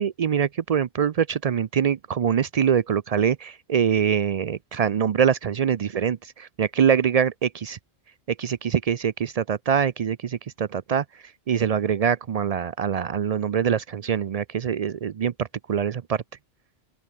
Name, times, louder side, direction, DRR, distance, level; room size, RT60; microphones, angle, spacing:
voice 1, 0.0-7.8 8.3-11.0 11.5-16.2, right 8 dB, 70° right, 0.3 m, -24 dB
open air
omnidirectional pair, 1.3 m